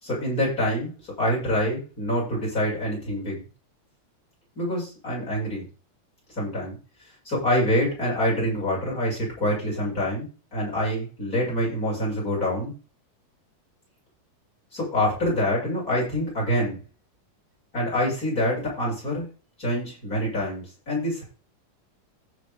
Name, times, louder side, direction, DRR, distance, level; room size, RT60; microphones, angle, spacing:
voice 1, 0.0-0.9 1.2-3.4 4.6-5.7 6.4-6.8 7.3-12.7 14.7-16.8 17.7-19.3 19.6-21.2, equal, 25° left, -5 dB, 7.2 m, -26 dB
15.5 x 6.4 x 3.8 m, 0.33 s
omnidirectional pair, 3.6 m